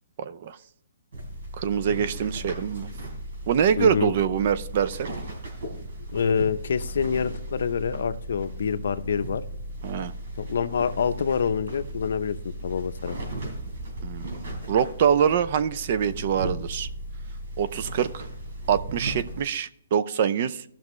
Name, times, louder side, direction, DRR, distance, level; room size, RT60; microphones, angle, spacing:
voice 1, 0.2-0.6 1.6-2.9 3.5-5.1 9.8-10.1 14.0-14.3 14.7-16.9 17.6-18.3 18.7-20.6, right 8 dB, 40° right, 15 dB, 0.5 m, -24 dB
sound 1, 1.1-19.4, right 1 dB, 65° right, 3.7 m, -36 dB
voice 2, 3.8-4.1 6.1-9.4 10.4-13.2, left 6 dB, 70° left, 11 dB, 0.7 m, -26 dB
15.5 x 6.0 x 3.1 m, 0.72 s
hypercardioid pair, 165°, 0 cm